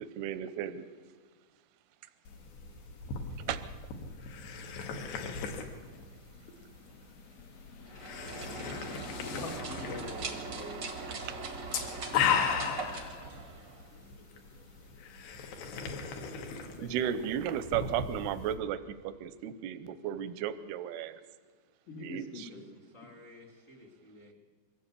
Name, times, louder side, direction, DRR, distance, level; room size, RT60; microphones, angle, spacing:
voice 1, 0.2-0.8 3.5-3.6 16.8-18.8 19.2-21.1 22.0-22.5, right 10 dB, 80° right, 12 dB, 2.5 m, -34 dB
sound 1, 2.3-18.6, left 6 dB, 70° left, 3.7 m, -37 dB
voice 2, 2.9-3.5 13.9-15.0 22.5-24.3, left 2 dB, 30° left, 1 dB, 1.6 m, -57 dB
sound 2, 5.8-9.6, left 11 dB, 85° left, 3.3 m, -51 dB
sound 3, 7.8-14.0, right 3 dB, 65° right, 1.1 m, -41 dB
voice 3, 9.3-10.9 16.7-16.9 21.9-22.7, left 2 dB, 50° left, 3 dB, 0.8 m, -43 dB
23.5 x 15.5 x 8.4 m, 1.5 s
omnidirectional pair, 5.3 m